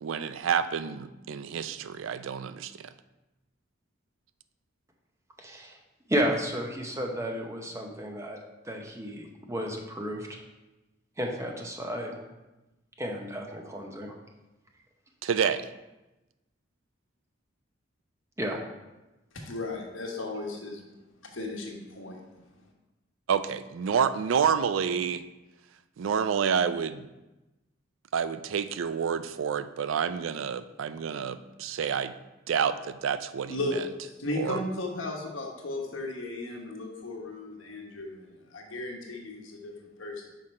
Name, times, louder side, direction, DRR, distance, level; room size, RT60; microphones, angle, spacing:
voice 1, 0.0-2.7 15.2-15.7 23.3-25.2 26.0-27.1 28.1-32.2 32.5-33.6 34.4-34.6, right 7 dB, 80° right, 12 dB, 0.4 m, -28 dB
voice 2, 5.4-5.8 6.1-8.4 8.6-10.4 11.2-12.2 13.0-14.2 18.4-18.6, equal, 15° right, 1 dB, 0.8 m, -32 dB
voice 3, 19.3-20.8 21.2-22.2 33.5-33.8 34.2-40.3, left 2 dB, 85° left, 1 dB, 1.2 m, -35 dB
5.8 x 4.9 x 4.3 m, 1.0 s
head